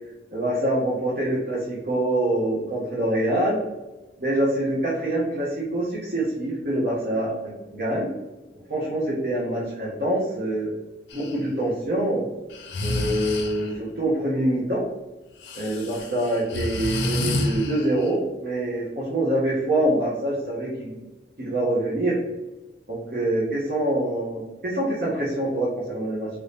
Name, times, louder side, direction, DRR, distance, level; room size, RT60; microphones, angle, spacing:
voice 1, 0.3-3.6 4.2-8.1 8.7-10.7 11.1-12.2 12.8-14.8 15.6-20.9 21.4-22.2 22.9-26.3, right 1 dB, 55° right, -7 dB, 0.8 m, -25 dB
Breathing, 11.1-11.4 12.5-13.8 15.4-18.1, left 2 dB, 90° left, 0.5 m, -29 dB
3.0 x 2.7 x 3.3 m, 1.1 s
head